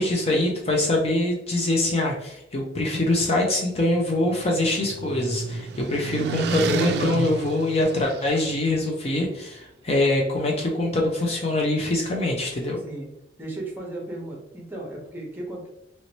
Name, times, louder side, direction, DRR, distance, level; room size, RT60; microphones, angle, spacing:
voice 1, 0.0-12.8, left 1 dB, 35° left, 0 dB, 0.5 m, -24 dB
sound 1, 3.9-8.6, right 4 dB, 65° right, 0.3 m, -30 dB
voice 2, 13.4-15.7, right 2 dB, 10° right, -2 dB, 0.9 m, -35 dB
3.0 x 2.8 x 2.9 m, 0.85 s
head